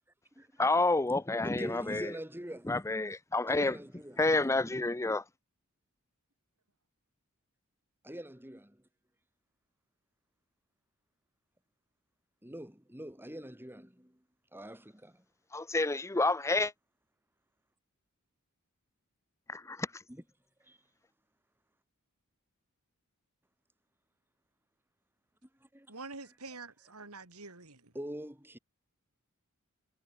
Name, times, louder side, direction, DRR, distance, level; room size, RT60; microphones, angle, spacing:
voice 1, 0.6-2.1 2.7-3.7 4.2-5.2 15.5-16.7 19.5-20.0, left 2 dB, 15° left, 0.6 m, -29 dB
voice 2, 1.4-2.8 3.5-4.2 8.0-8.9 12.4-14.2 14.5-15.2 20.1-20.2 20.6-20.8 25.4-25.9 27.9-28.6, right 1 dB, 10° right, 6.8 m, -44 dB
voice 3, 25.9-27.9, right 3 dB, 85° right, 5.8 m, -46 dB
head